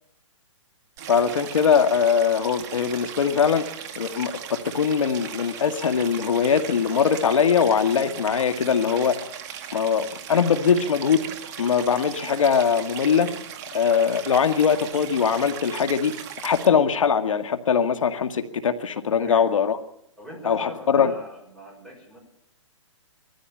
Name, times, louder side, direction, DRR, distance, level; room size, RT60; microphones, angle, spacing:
Stream, 1.0-16.7, right 9 dB, 35° right, 1.7 m, -38 dB
voice 1, 1.1-3.7 4.0-9.2 9.7-11.3 11.6-13.3 13.7-16.1 16.4-19.8 20.4-21.1, left 6 dB, 80° left, 8 dB, 1.9 m, -21 dB
voice 2, 19.2-19.6 20.2-22.2, equal, 5° left, -2 dB, 5.7 m, -42 dB
20.5 x 14.5 x 9.0 m, 0.75 s
hypercardioid pair, 165°, 16 cm